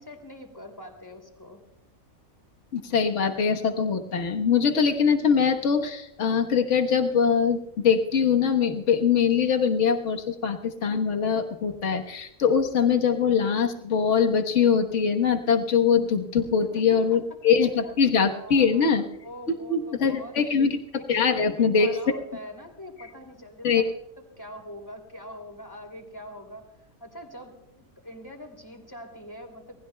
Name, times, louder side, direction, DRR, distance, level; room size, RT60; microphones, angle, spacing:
voice 1, 0.0-1.6 16.4-17.2 17.6-18.0 18.3-20.6 21.0-23.9 24.2-29.8, equal, 15° left, 3 dB, 2.9 m, -43 dB
voice 2, 2.7-19.0 19.7-20.8 21.1-22.0 23.6-23.8, left 6 dB, 60° left, 3 dB, 1.6 m, -22 dB
27.5 x 19.5 x 2.3 m, 0.88 s
omnidirectional pair, 1.4 m